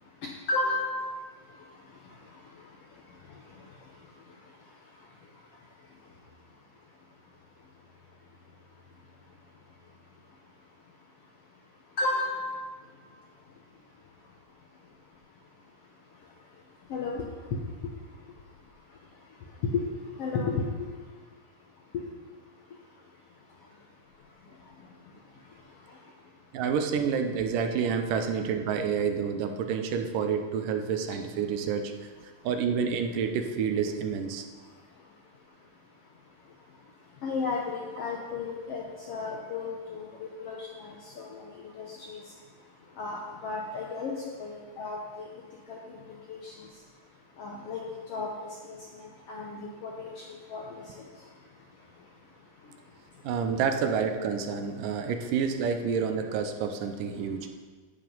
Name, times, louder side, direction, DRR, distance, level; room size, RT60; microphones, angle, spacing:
voice 1, 0.5-1.1 12.0-12.6 16.9-17.2 19.7-19.8 20.2-20.9 21.9-22.0 37.2-41.4 41.8-42.2 43.0-44.1 44.4-45.3 45.7-46.0 46.3-46.5 47.4-47.8 48.1-48.3 48.7-48.8 49.3-50.2 50.5-50.6 51.0-51.1, left 3 dB, 70° left, -1 dB, 1.4 m, -33 dB
voice 2, 26.5-31.9 32.4-34.5 53.2-57.5, right 6 dB, 85° right, 6 dB, 2.4 m, -28 dB
15.0 x 5.1 x 5.5 m, 1.5 s
omnidirectional pair, 3.8 m